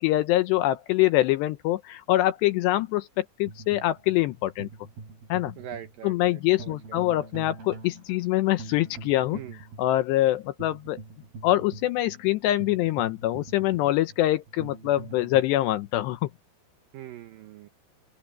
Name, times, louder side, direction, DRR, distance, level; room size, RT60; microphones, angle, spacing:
voice 1, 0.0-4.7 5.3-5.5 6.0-9.4 9.8-11.0 11.4-16.3, left 15 dB, 80° left, 2.7 m, -24 dB
sound 1, 3.4-15.4, right 4 dB, 55° right, 7.2 m, -44 dB
voice 2, 5.6-7.2 9.3-9.6 16.9-17.7, right 10 dB, 85° right, 2.0 m, -43 dB
open air
omnidirectional pair, 5.4 m